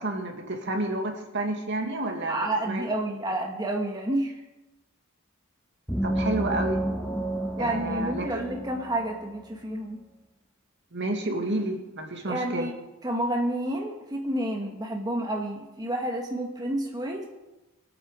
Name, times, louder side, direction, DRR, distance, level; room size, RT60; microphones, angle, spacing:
voice 1, 0.0-2.4 2.7-2.9 6.0-6.8 7.6-8.3 10.9-12.7, right 2 dB, 60° right, 3 dB, 2.3 m, -30 dB
voice 2, 2.3-4.3 7.6-10.0 12.2-12.7 13.0-17.3, right 1 dB, 20° right, 1 dB, 1.4 m, -29 dB
sound 1, 5.9-9.4, right 1 dB, 5° left, 2.2 m, -30 dB
22.5 x 8.9 x 5.0 m, 1.0 s
head